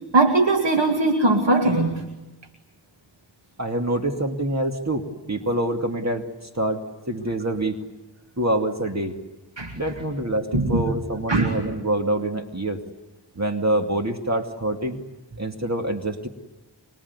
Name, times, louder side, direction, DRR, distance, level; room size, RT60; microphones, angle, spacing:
voice 1, 0.1-2.0 9.6-9.7 10.5-10.8 11.3-11.5, right 2 dB, 80° right, 3 dB, 2.4 m, -20 dB
voice 2, 3.6-6.3 6.5-6.8 7.1-7.7 8.4-9.2 9.7-12.8 13.4-15.0 15.4-16.3, right 1 dB, 40° right, 4 dB, 2.4 m, -25 dB
25.0 x 24.0 x 9.7 m, 1.1 s
wide cardioid pair, 55°, 43 cm